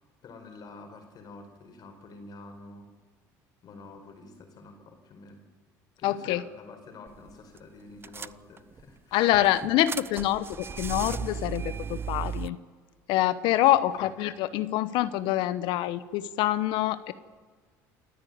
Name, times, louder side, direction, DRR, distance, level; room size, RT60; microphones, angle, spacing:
voice 1, 0.2-2.9 3.6-5.4 6.0-9.2 13.7-14.1, left 3 dB, 50° left, 5 dB, 4.8 m, -48 dB
voice 2, 6.0-6.4 9.1-12.6 13.1-17.1, left 14 dB, 75° left, 15 dB, 1.0 m, -26 dB
sound 1, 7.1-7.3 7.6-7.7 8.0-8.8 9.3-12.5, right 6 dB, 25° right, 0.5 m, -35 dB
28.5 x 9.9 x 9.5 m, 1.5 s
supercardioid pair, 90°, 8 cm